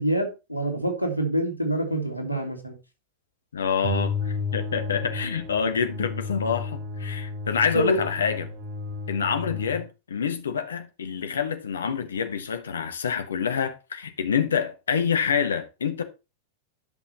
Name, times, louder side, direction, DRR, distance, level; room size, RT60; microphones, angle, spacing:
voice 1, 0.0-2.8 7.7-8.0, right 1 dB, 90° right, 2.1 m, -26 dB
voice 2, 3.5-8.5 9.1-16.0, left 7 dB, 70° left, 1.2 m, -27 dB
sound 1, 3.8-9.8, left 3 dB, 45° right, 4.5 m, -32 dB
10.5 x 5.7 x 4.3 m
figure-of-eight pair, 90°, 0 cm